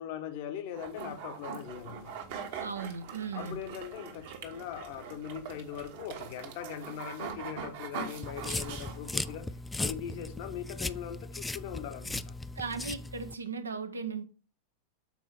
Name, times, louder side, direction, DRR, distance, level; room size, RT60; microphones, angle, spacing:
voice 1, 0.0-2.2 3.3-12.4, left 9 dB, 50° left, 0.9 m, -41 dB
sound 1, 0.7-9.4, right 6 dB, 50° right, 1.3 m, -42 dB
voice 2, 2.6-3.6 12.6-14.2, right 5 dB, 75° right, 0.7 m, -37 dB
sound 2, 8.2-13.3, left 2 dB, 10° left, 0.3 m, -37 dB
7.2 x 4.5 x 4.3 m
figure-of-eight pair, 90°, 0 cm